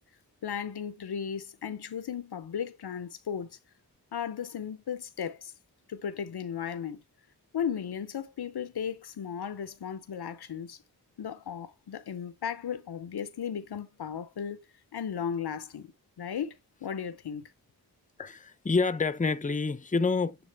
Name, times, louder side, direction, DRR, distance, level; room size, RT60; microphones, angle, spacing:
voice 1, 0.4-3.6 4.1-5.5 5.9-7.0 7.5-10.8 11.2-14.6 14.9-15.9 16.2-17.5, left 8 dB, 85° left, 0.7 m, -35 dB
voice 2, 18.2-20.4, left 4 dB, 20° left, 0.6 m, -27 dB
8.7 x 3.5 x 3.4 m
wide cardioid pair, 50°, 38 cm